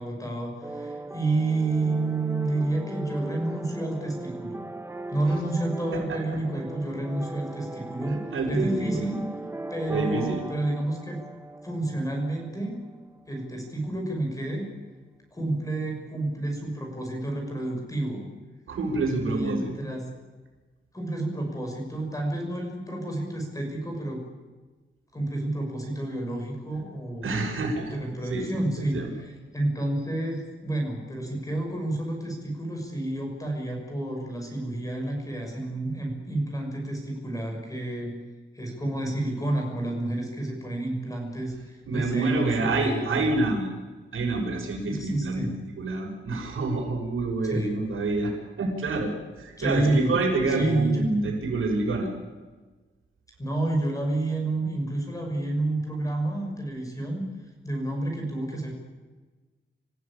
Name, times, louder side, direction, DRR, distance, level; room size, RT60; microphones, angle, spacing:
voice 1, 0.0-4.6 5.1-8.2 8.5-9.2 9.7-11.2 11.6-12.8 13.3-14.7 15.3-18.3 19.1-20.0 20.9-24.2 25.1-27.3 27.9-38.1 38.5-43.3 44.9-45.5 47.4-47.7 49.6-50.1 50.6-51.1 53.4-57.2 57.6-58.7, right 2 dB, 15° left, 1 dB, 6.3 m, -29 dB
sound 1, 0.6-13.4, right 2 dB, 10° right, 1.0 m, -39 dB
voice 2, 5.9-6.4 8.1-9.0 9.9-10.4 18.7-19.7 27.2-27.9 28.3-28.5 28.8-29.1 41.9-43.7 44.1-45.5 45.8-52.1, right 3 dB, 85° right, 0 dB, 6.4 m, -27 dB
28.0 x 15.0 x 8.8 m, 1.3 s
wide cardioid pair, 160°, 21 cm